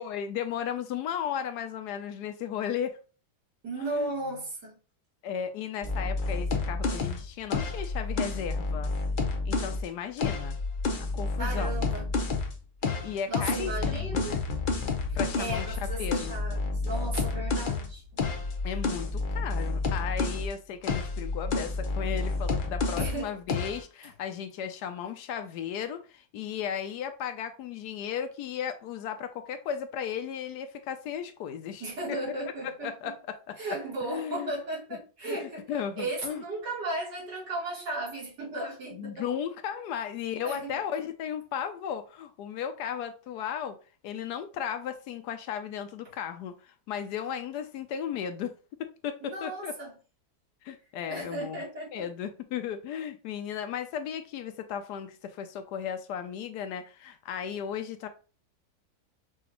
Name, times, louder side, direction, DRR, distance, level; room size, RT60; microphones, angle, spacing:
voice 1, 0.0-3.0 3.8-4.1 5.2-8.9 9.4-10.6 11.0-11.9 13.0-14.4 15.1-16.3 18.6-32.2 32.6-33.6 34.0-34.5 35.2-36.4 38.9-43.8 44.0-48.5 48.8-49.8 50.6-51.6 51.9-58.1, left 8 dB, 75° left, 1.1 m, -35 dB
voice 2, 3.6-4.8 7.6-7.7 11.4-12.1 12.9-13.0 13.3-14.4 15.1-18.0 18.6-18.8 22.9-23.3 31.8-33.1 33.6-35.6 36.0-39.2 40.4-40.8 49.2-49.9 51.1-52.1, right 2 dB, 75° right, 2.6 m, -35 dB
sound 1, 5.8-9.8 10.2-12.5 12.8-20.5 20.8-23.2 23.5-23.8, left 3 dB, 55° left, 0.5 m, -30 dB
5.9 x 2.4 x 2.9 m
omnidirectional pair, 1.8 m